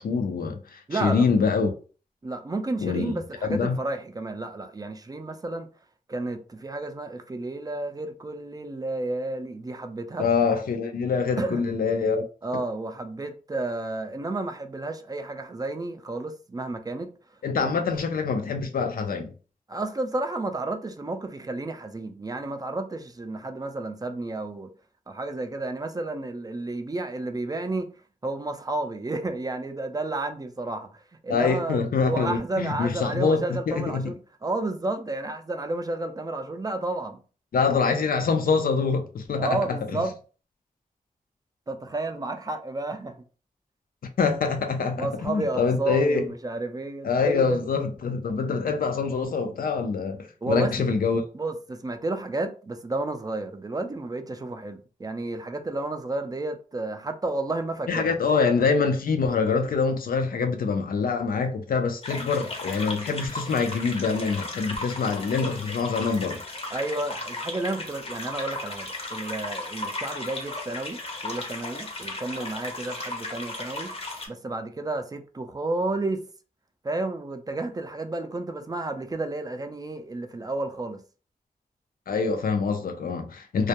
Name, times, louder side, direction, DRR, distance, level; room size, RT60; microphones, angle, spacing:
voice 1, 0.0-1.7 2.8-3.1 3.5-3.8 10.2-12.3 17.4-19.3 31.3-34.1 37.5-40.0 44.2-46.2 47.0-51.2 57.9-66.4 82.1-83.7, left 5 dB, 85° left, 0.5 m, -25 dB
voice 2, 0.9-1.3 2.2-5.7 6.1-10.3 11.4-11.7 12.4-17.1 17.6-17.7 19.7-24.7 25.1-27.9 28.2-37.2 39.3-40.1 41.7-43.2 45.0-47.6 50.4-50.7 51.3-58.2 66.7-73.9 74.3-76.2 76.8-81.0, right 2 dB, 25° right, 0.3 m, -31 dB
sound 1, 62.0-74.3, left 2 dB, 40° left, 0.6 m, -35 dB
2.3 x 2.1 x 2.8 m
wide cardioid pair, 80°, 14 cm